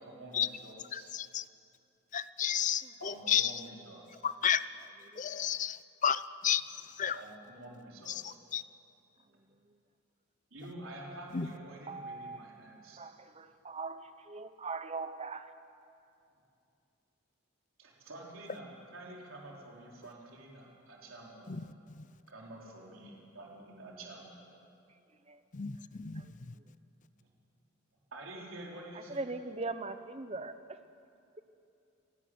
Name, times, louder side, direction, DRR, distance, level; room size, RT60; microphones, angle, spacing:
voice 1, 0.0-1.1 3.0-4.0 7.1-8.3 10.5-13.0 17.8-21.5 22.3-24.5 27.2-27.3 28.1-29.3, right 1 dB, 85° right, -2 dB, 4.1 m, -48 dB
voice 2, 0.9-1.4 2.1-3.6 4.2-4.6 5.2-7.2 8.1-8.6 11.3-11.5 21.5-21.6 22.0-22.1 25.5-26.5, left 9 dB, 40° left, 15 dB, 0.6 m, -32 dB
voice 3, 5.1-5.5 9.3-9.8 11.9-12.5 13.0-15.5 25.3-25.4 26.1-26.3 28.9-30.8, right 3 dB, 30° right, 10 dB, 0.9 m, -41 dB
27.5 x 12.5 x 9.4 m, 2.5 s
head